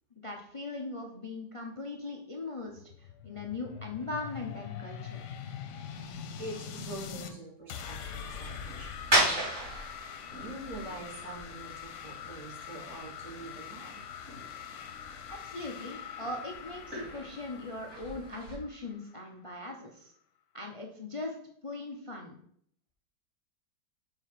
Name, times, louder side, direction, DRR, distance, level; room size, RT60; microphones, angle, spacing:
voice 1, 0.2-5.3 15.3-20.1 20.5-21.4 21.6-22.4, left 2 dB, 35° left, 2 dB, 0.5 m, -40 dB
sound 1, 2.7-7.3 7.7-19.3, left 8 dB, 80° left, 1.3 m, -44 dB
voice 2, 6.4-8.9 9.2-9.5 10.3-14.0 14.8-14.9, right 2 dB, 75° right, -4 dB, 2.9 m, -44 dB
sound 2, 8.2-18.5, right 1 dB, 40° right, 3.9 m, -36 dB
5.6 x 4.8 x 5.7 m, 0.66 s
omnidirectional pair, 1.8 m